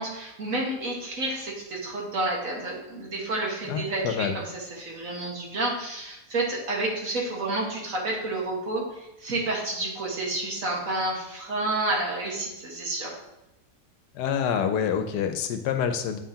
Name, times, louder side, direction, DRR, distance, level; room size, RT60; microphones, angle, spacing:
voice 1, 0.0-13.2, right 2 dB, 55° right, -2 dB, 1.9 m, -30 dB
voice 2, 3.7-4.4 14.1-16.2, left 8 dB, 85° left, 7 dB, 1.3 m, -27 dB
8.7 x 5.7 x 2.9 m, 0.90 s
omnidirectional pair, 1.7 m